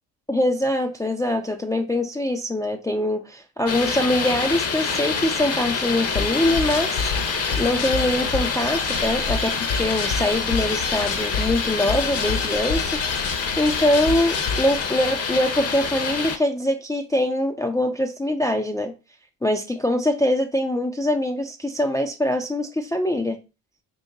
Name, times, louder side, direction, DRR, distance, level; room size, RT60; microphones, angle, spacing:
voice 1, 0.3-13.3 13.6-18.9 19.4-23.4, left 1 dB, 10° left, 0.4 m, -23 dB
sound 1, 3.7-16.4, left 5 dB, 35° left, 0.8 m, -27 dB
sound 2, 6.1-14.9, left 5 dB, 65° left, 1.0 m, -29 dB
3.9 x 2.5 x 3.8 m
supercardioid pair, 70°, 45 cm